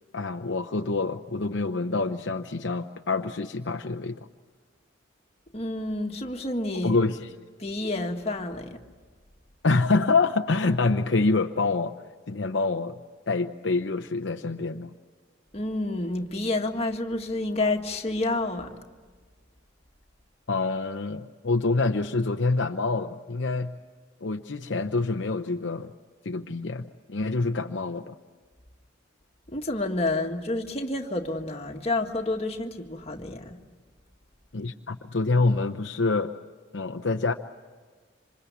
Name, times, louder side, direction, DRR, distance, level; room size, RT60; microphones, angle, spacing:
voice 1, 0.1-4.2 6.8-7.3 9.6-11.9 12.3-13.0 13.3-14.9 20.5-23.7 24.2-25.9 26.2-28.1 34.5-36.3 36.7-37.3, left 3 dB, 65° left, 6 dB, 0.8 m, -26 dB
voice 2, 5.5-7.0 7.6-8.8 15.5-18.7 29.5-33.6, left 2 dB, 30° left, 2 dB, 1.8 m, -29 dB
27.0 x 26.5 x 8.3 m, 1.5 s
head